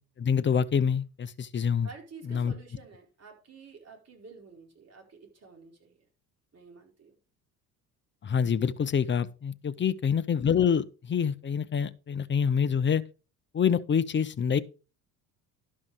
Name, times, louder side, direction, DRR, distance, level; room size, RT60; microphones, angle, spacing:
voice 1, 0.2-1.9 2.3-2.5 8.2-13.0 13.5-14.6, left 7 dB, 25° left, 0.6 m, -26 dB
voice 2, 1.8-6.1 6.5-7.2 9.8-9.9, right 4 dB, 30° right, 4.6 m, -50 dB
12.0 x 5.4 x 4.9 m
figure-of-eight pair, 55°, 47 cm